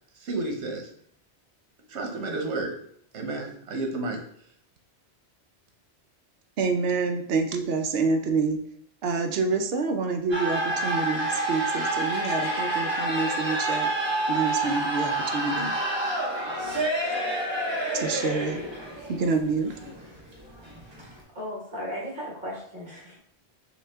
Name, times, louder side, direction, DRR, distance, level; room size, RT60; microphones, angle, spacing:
voice 1, 0.2-0.9 1.9-2.7 3.1-4.2, right 2 dB, 85° right, 2 dB, 1.2 m, -31 dB
voice 2, 6.6-8.6 9.0-13.9 14.3-15.7 17.9-18.6 19.1-19.7, right 4 dB, 65° right, 6 dB, 0.8 m, -27 dB
sound 1, 10.3-21.2, right 2 dB, 25° right, 0.9 m, -28 dB
voice 3, 21.3-23.2, equal, 50° right, -3 dB, 1.5 m, -36 dB
5.9 x 2.4 x 3.4 m, 0.65 s
omnidirectional pair, 1.1 m